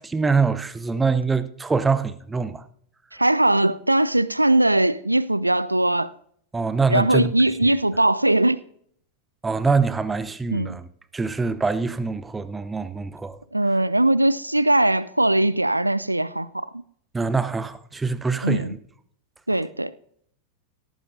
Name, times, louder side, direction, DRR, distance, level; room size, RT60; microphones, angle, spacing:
voice 1, 0.0-2.6 6.5-7.3 7.6-7.7 9.4-10.9 11.1-13.4 17.1-18.8, right 4 dB, 10° right, 0.8 m, -24 dB
voice 2, 3.1-6.1 6.9-8.6 10.5-10.8 13.5-16.7 18.4-18.8 19.5-19.9, right 1 dB, 85° right, 0.4 m, -20 dB
17.5 x 14.0 x 2.7 m
figure-of-eight pair, 90°, 0 cm